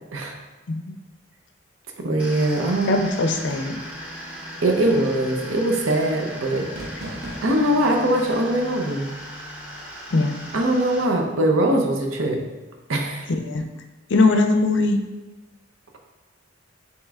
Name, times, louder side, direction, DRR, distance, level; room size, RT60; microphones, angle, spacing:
voice 1, 2.0-3.0 4.6-6.7 7.4-9.1 10.5-12.4 12.9-13.3, right 1 dB, 90° right, 2 dB, 0.7 m, -21 dB
sound 1, 2.2-11.0, equal, 5° right, 0.7 m, -37 dB
voice 2, 2.9-3.8 10.1-10.4 13.3-13.6 14.1-15.0, left 3 dB, 65° left, 6 dB, 0.4 m, -20 dB
sound 2, 3.5-4.0 4.8-5.3 6.8-7.8, right 1 dB, 50° right, 0.8 m, -38 dB
7.3 x 3.0 x 2.4 m, 1.2 s
head